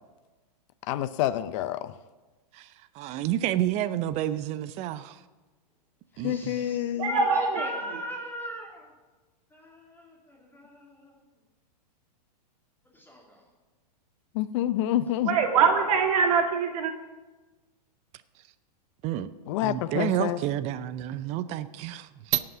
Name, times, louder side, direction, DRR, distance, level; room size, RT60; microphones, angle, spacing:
voice 1, 0.9-1.9 6.2-7.1 14.3-15.3 19.5-20.4, left 12 dB, 45° left, 0.6 m, -27 dB
voice 2, 2.5-5.2 6.2-6.7 19.0-19.3 19.6-22.4, right 12 dB, 30° right, 0.6 m, -30 dB
voice 3, 6.2-8.9 9.5-11.2 12.8-13.5, equal, 10° left, 3.0 m, -40 dB
voice 4, 7.0-7.7 15.2-16.9, right 5 dB, 60° right, 2.3 m, -23 dB
17.5 x 5.9 x 6.1 m
hypercardioid pair, 130°, 21 cm